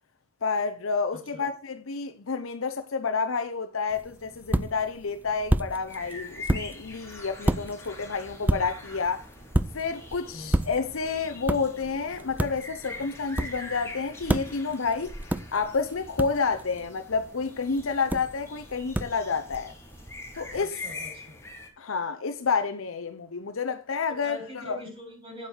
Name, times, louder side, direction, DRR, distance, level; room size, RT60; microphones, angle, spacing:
voice 1, 0.4-9.2 9.7-15.2 15.5-19.7 20.3-20.7 21.8-24.4 24.7-24.8, left 5 dB, 80° left, 0.8 m, -29 dB
voice 2, 1.1-1.4 10.3-10.7 20.5-21.4 24.1-25.5, left 1 dB, 30° right, 6.4 m, -43 dB
sound 1, 3.9-20.6, right 1 dB, 10° right, 0.4 m, -32 dB
sound 2, 5.9-21.7, left 2 dB, 15° left, 3.1 m, -44 dB
9.3 x 8.3 x 4.5 m
head